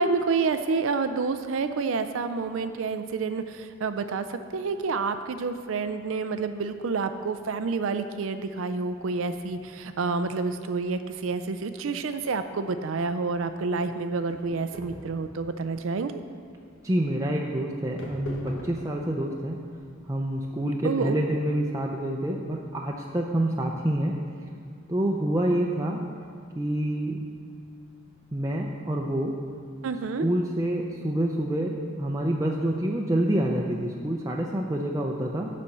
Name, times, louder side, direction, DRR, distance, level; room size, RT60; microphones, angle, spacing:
voice 1, 0.0-16.1 20.8-21.1 29.8-30.3, right 4 dB, 75° right, 9 dB, 0.4 m, -28 dB
sound 1, 9.2-20.7, left 1 dB, 85° left, 1.7 m, -45 dB
voice 2, 16.8-19.6 20.1-24.1 24.9-26.0 26.6-27.2 28.3-29.3 30.2-35.5, right 1 dB, 15° right, -1 dB, 0.5 m, -27 dB
11.5 x 4.3 x 7.8 m, 2.2 s
head